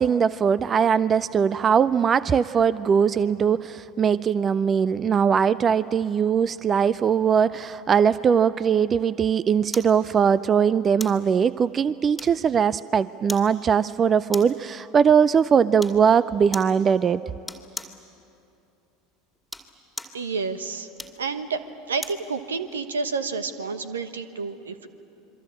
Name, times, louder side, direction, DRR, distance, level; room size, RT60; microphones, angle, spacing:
voice 1, 0.0-17.2, right 7 dB, 30° right, 17 dB, 0.5 m, -21 dB
sound 1, 9.7-10.0 11.0-11.2 12.2-12.6 13.3-13.5 14.3-14.6 15.8-16.0 16.5-16.8 17.5-18.0 19.4-20.2 21.0-22.3 22.7-22.8, left 2 dB, 5° left, 2.4 m, -37 dB
voice 2, 20.1-20.9 21.2-21.6 21.9-24.9, right 4 dB, 80° right, 10 dB, 1.2 m, -29 dB
27.0 x 23.5 x 8.6 m, 2.8 s
figure-of-eight pair, 75°, 0 cm